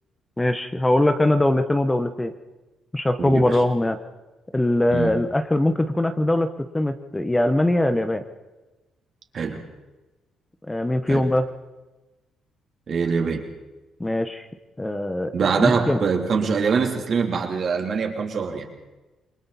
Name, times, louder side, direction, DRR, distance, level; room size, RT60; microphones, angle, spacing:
voice 1, 0.4-2.3 2.9-4.0 4.5-6.5 6.7-8.2 10.7-11.4 14.0-14.5 14.8-16.0, left 1 dB, 15° left, 8 dB, 1.2 m, -21 dB
voice 2, 3.3-3.6 4.9-5.2 9.3-9.6 11.1-11.2 12.9-13.4 15.3-18.6, right 5 dB, 55° right, 2 dB, 3.4 m, -23 dB
28.0 x 22.0 x 4.3 m, 1.1 s
cardioid pair, 90°, 0 cm